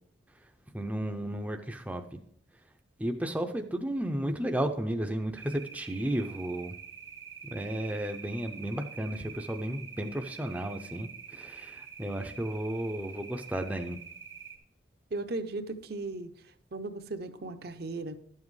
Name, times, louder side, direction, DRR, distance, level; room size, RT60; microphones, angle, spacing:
voice 1, 0.7-2.0 3.0-6.7 7.5-14.0, right 1 dB, 10° right, 0.5 m, -33 dB
sound 1, 5.4-14.6, right 7 dB, 90° right, 1.9 m, -46 dB
voice 2, 15.1-16.3 16.7-18.2, right 2 dB, 55° right, 0.6 m, -36 dB
11.5 x 7.3 x 3.2 m
head